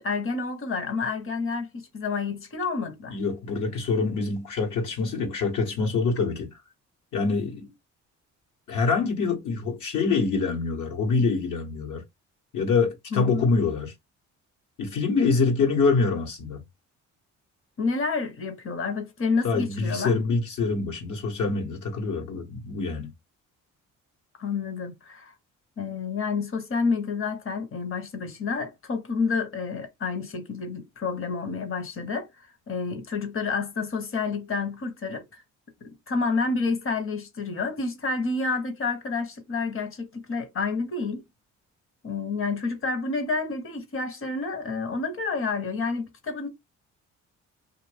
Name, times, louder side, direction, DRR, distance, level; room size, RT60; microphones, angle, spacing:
voice 1, 0.0-3.2 13.1-13.4 17.8-20.1 24.4-25.3 25.8-35.4 35.8-41.2 42.0-46.5, left 4 dB, 45° left, 1.1 m, -29 dB
voice 2, 3.1-6.5 7.1-7.7 8.7-12.0 12.5-13.9 14.8-16.6 19.4-23.1, left 4 dB, 75° left, 1.4 m, -25 dB
2.6 x 2.5 x 3.3 m
cardioid pair, 90°, 30 cm